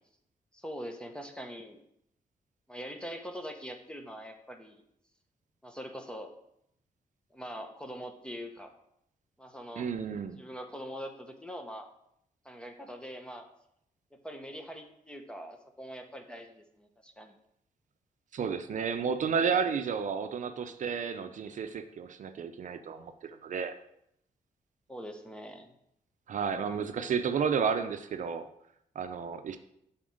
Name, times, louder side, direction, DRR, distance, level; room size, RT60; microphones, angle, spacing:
voice 1, 0.5-1.8 2.7-4.8 5.6-6.3 7.3-8.7 9.4-9.9 10.4-11.9 12.4-13.4 14.1-17.3 24.9-25.7, equal, 5° left, 5 dB, 1.1 m, -43 dB
voice 2, 9.8-10.4 18.3-23.7 26.3-28.5 29.0-29.6, right 6 dB, 60° right, 8 dB, 0.6 m, -32 dB
7.5 x 4.3 x 6.4 m, 0.74 s
cardioid pair, 100°, 14 cm